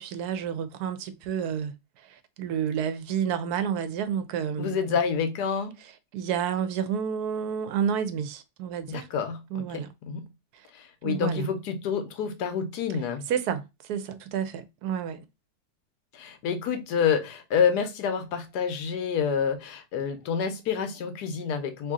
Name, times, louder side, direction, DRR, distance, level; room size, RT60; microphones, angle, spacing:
voice 1, 0.0-1.7 2.0-5.0 6.1-9.1 9.5-9.9 10.5-10.7 11.0-11.5 13.3-15.2, right 8 dB, 80° right, 1.1 m, -30 dB
voice 2, 4.6-5.7 8.9-10.3 10.7-13.3 16.1-21.9, left 6 dB, 90° left, 1.3 m, -28 dB
3.1 x 2.7 x 3.6 m
omnidirectional pair, 1.7 m